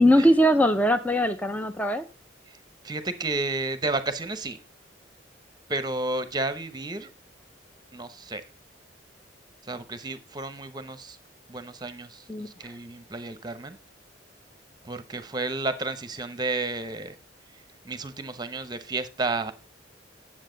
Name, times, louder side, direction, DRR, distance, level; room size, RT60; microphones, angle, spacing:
voice 1, 0.0-2.0 12.3-12.5, equal, 10° left, 8 dB, 0.5 m, -20 dB
voice 2, 2.8-4.6 5.7-7.1 7.9-8.4 9.6-11.2 11.5-13.8 14.8-17.1 17.5-19.5, right 3 dB, 20° right, 12 dB, 0.9 m, -32 dB
9.7 x 7.5 x 3.9 m, 0.30 s
head